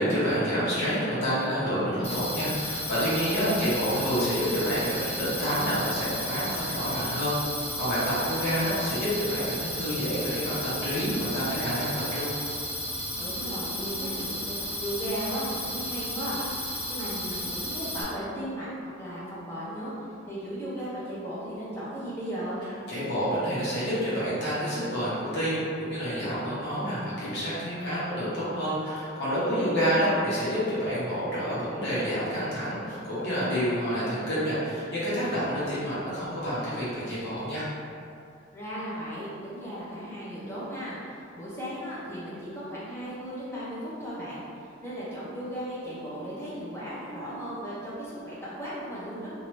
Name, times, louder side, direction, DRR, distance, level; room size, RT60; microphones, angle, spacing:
voice 1, 0.0-12.3 22.9-37.7, equal, 60° left, -10 dB, 1.1 m, -28 dB
sound 1, 2.0-18.0, left 1 dB, 35° left, 1.1 m, -34 dB
voice 2, 3.3-3.7 13.1-16.4 16.6-18.7 19.0-19.9 20.3-22.6 29.6-30.0 38.5-44.4 44.8-49.3, equal, 10° left, -9 dB, 0.8 m, -36 dB
2.8 x 2.5 x 3.1 m, 2.5 s
head